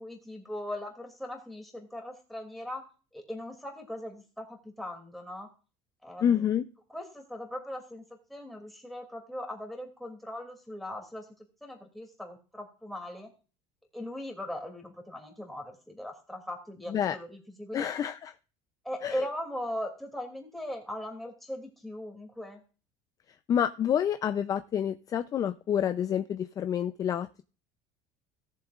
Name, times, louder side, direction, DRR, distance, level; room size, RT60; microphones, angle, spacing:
voice 1, 0.0-2.8 3.1-5.5 6.0-6.5 6.9-8.0 8.3-11.3 11.6-13.3 13.9-17.9 18.8-22.6, left 1 dB, ahead, 1 dB, 2.6 m, -39 dB
voice 2, 6.2-6.6 16.9-17.2 17.7-18.3 19.0-19.2 23.5-27.4, left 9 dB, 30° left, 10 dB, 0.5 m, -28 dB
17.5 x 7.3 x 2.4 m, 0.35 s
cardioid pair, 150°, 12 cm